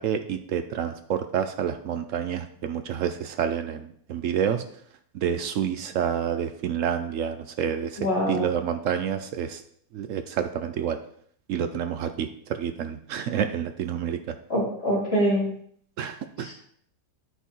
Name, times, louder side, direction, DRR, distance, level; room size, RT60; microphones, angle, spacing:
voice 1, 0.0-4.6 5.1-9.6 9.9-11.0 11.5-14.3 16.0-16.5, right 8 dB, 75° right, 8 dB, 0.7 m, -28 dB
voice 2, 8.0-8.5 14.5-15.5 16.4-16.5, equal, 35° left, -8 dB, 4.1 m, -24 dB
9.2 x 4.6 x 4.4 m, 0.63 s
omnidirectional pair, 1.9 m